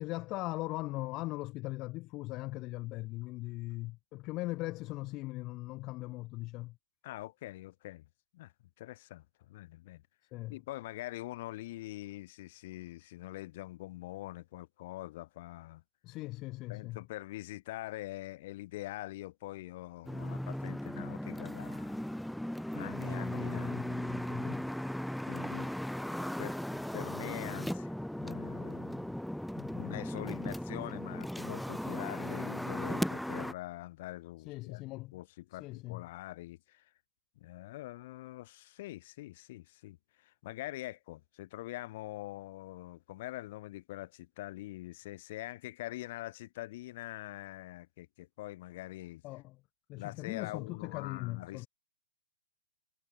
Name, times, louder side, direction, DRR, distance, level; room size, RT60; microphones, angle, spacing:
voice 1, 0.0-6.8 10.3-10.6 16.0-17.0 23.3-24.6 29.6-30.1 34.4-35.2 35.5-36.0 49.2-49.6 49.9-51.7, left 20 dB, 35° left, 4.9 m, -40 dB
voice 2, 7.0-8.1 8.3-10.0 10.5-15.8 16.7-22.0 22.7-24.2 25.3-25.7 26.4-27.9 28.2-29.1 29.8-34.8 35.1-36.9 37.4-49.2 49.9-51.7, left 17 dB, 50° left, 6.4 m, -44 dB
sound 1, 20.1-33.5, equal, ahead, 6.1 m, -37 dB
hypercardioid pair, 125°, 0 cm